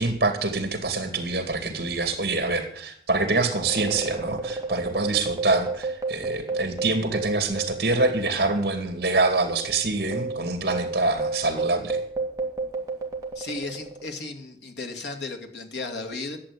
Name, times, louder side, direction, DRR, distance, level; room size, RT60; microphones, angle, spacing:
voice 1, 0.0-12.0, right 3 dB, 60° right, 7 dB, 2.4 m, -25 dB
sound 1, 3.5-8.4 8.6-8.8 9.4-14.1, right 3 dB, 20° right, 2.1 m, -31 dB
voice 2, 13.4-16.4, left 3 dB, 85° left, 4 dB, 2.2 m, -34 dB
11.5 x 7.8 x 9.7 m, 0.64 s
head